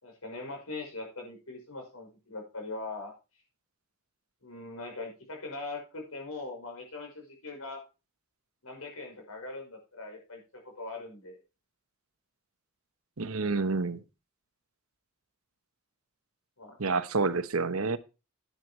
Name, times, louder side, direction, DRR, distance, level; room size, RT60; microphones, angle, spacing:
voice 1, 0.0-3.1 4.4-7.8 8.6-10.4 10.8-11.4 16.6-16.8, left 3 dB, 90° left, 5.8 m, -41 dB
voice 2, 13.2-14.0 16.8-18.0, right 4 dB, 80° right, 1.0 m, -28 dB
11.0 x 9.7 x 4.4 m
head